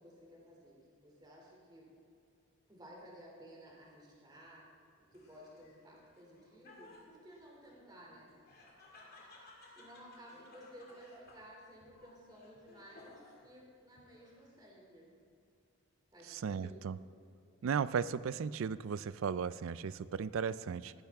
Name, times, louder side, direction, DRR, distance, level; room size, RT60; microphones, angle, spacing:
voice 1, 0.0-1.9 2.7-4.6 5.0-8.4 9.7-15.1 16.1-16.8, equal, 20° right, -3 dB, 2.6 m, -56 dB
Laughter, 5.1-13.5 14.0-14.6, left 2 dB, 45° left, 2.3 m, -59 dB
voice 2, 16.3-17.0 17.6-20.9, right 6 dB, 70° right, 16 dB, 0.4 m, -36 dB
19.5 x 10.5 x 3.5 m, 2.5 s
head